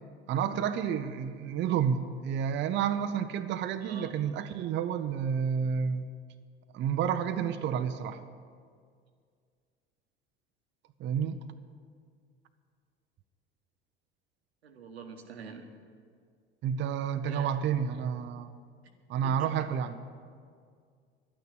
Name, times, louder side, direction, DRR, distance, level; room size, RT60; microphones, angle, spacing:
voice 1, 0.3-6.1 6.7-8.2 11.0-11.4 16.6-18.5 19.1-20.0, right 8 dB, 35° right, 8 dB, 0.6 m, -30 dB
voice 2, 3.8-4.1 14.6-15.7 17.2-17.5 19.2-19.5, right 6 dB, 80° right, 5 dB, 1.2 m, -45 dB
11.5 x 9.2 x 7.9 m, 2.1 s
hypercardioid pair, 75°, 31 cm